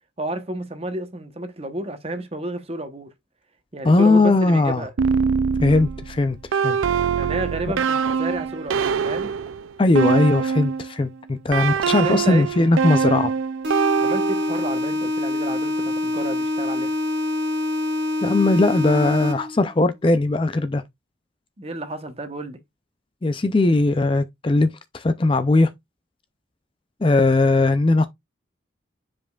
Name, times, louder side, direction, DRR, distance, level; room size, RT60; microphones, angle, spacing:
voice 1, 0.2-3.1 3.7-4.9 7.2-9.3 11.8-13.1 14.0-16.9 21.6-22.6, right 1 dB, 30° right, 1.0 m, -31 dB
voice 2, 3.8-4.8 5.6-6.4 6.6-6.8 9.8-13.3 18.2-20.8 23.2-25.7 27.0-28.1, left 2 dB, 25° left, 0.4 m, -19 dB
sound 1, 5.0-10.9 11.5-14.7, right 6 dB, 80° right, 0.4 m, -23 dB
sound 2, 13.6-19.6, left 1 dB, 60° right, 1.9 m, -25 dB
9.2 x 5.0 x 2.4 m
head